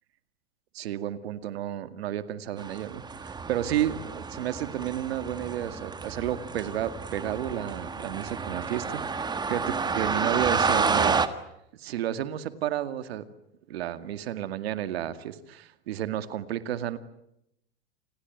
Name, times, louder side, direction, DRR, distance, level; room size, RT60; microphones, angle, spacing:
voice 1, 0.7-11.3 11.7-13.3 13.7-17.0, right 11 dB, 85° right, 11 dB, 2.2 m, -32 dB
sound 1, 2.6-11.3, right 4 dB, 15° right, 1.6 m, -30 dB
29.0 x 19.5 x 9.4 m, 0.81 s
supercardioid pair, 125°, 30 cm